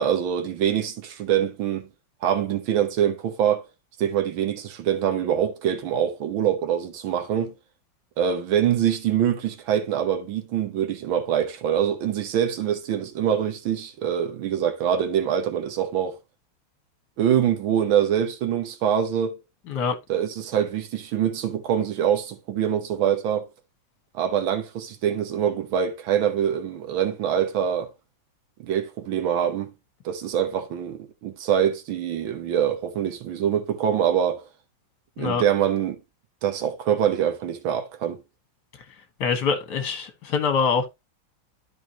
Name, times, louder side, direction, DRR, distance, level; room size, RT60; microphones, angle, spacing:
voice 1, 0.0-1.9 2.2-3.6 4.0-7.5 8.2-16.2 17.2-19.4 20.1-23.5 24.1-27.9 28.6-29.7 30.1-34.5 35.2-36.0 36.4-38.2, right 9 dB, 90° right, 1.8 m, -24 dB
voice 2, 19.7-20.0 35.2-35.4 39.2-40.9, left 5 dB, 60° left, 1.9 m, -24 dB
12.5 x 4.8 x 2.9 m
omnidirectional pair, 2.1 m